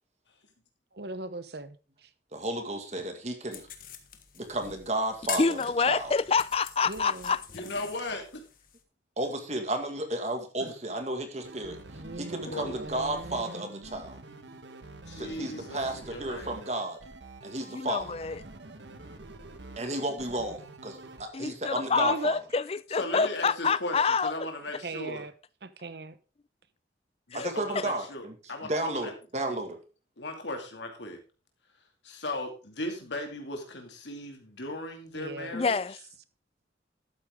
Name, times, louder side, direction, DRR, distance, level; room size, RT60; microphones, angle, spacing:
voice 1, 0.9-2.1 6.8-7.4 11.8-13.7 21.9-22.3 24.8-25.3 25.8-26.2 35.1-35.6, right 3 dB, 65° right, 1.0 m, -40 dB
voice 2, 2.3-3.7 4.4-5.6 5.9-6.1 9.2-11.8 12.2-14.2 15.1-17.0 17.4-18.1 19.8-22.4 27.3-28.3 28.6-29.8, right 1 dB, 40° right, 2.0 m, -33 dB
sound 1, 3.5-8.8, left 9 dB, 50° left, 1.4 m, -43 dB
voice 3, 5.4-7.4 17.7-18.4 21.3-24.5 27.3-27.8 35.5-35.9, left 4 dB, 35° left, 0.4 m, -27 dB
voice 4, 7.5-8.4 10.6-10.7 12.5-12.8 15.1-16.5 23.0-25.2 27.3-28.2 28.5-29.1 30.2-31.2 32.0-35.8, left 1 dB, 85° left, 2.5 m, -37 dB
sound 2, 11.4-21.2, right 2 dB, 90° right, 1.5 m, -47 dB
12.0 x 8.8 x 3.7 m
head